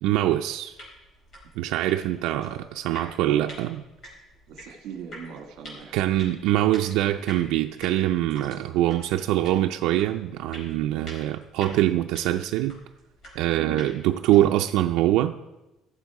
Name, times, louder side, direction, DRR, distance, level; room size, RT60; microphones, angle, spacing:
voice 1, 0.0-0.8 1.6-3.8 5.9-12.8 13.4-15.3, right 14 dB, 90° right, 0.4 m, -24 dB
sound 1, 0.7-14.6, equal, 35° left, 4.5 m, -47 dB
voice 2, 4.5-6.0 13.6-13.9, right 7 dB, 60° right, 1.7 m, -40 dB
16.5 x 7.3 x 4.8 m
cardioid pair, 180°, 0 cm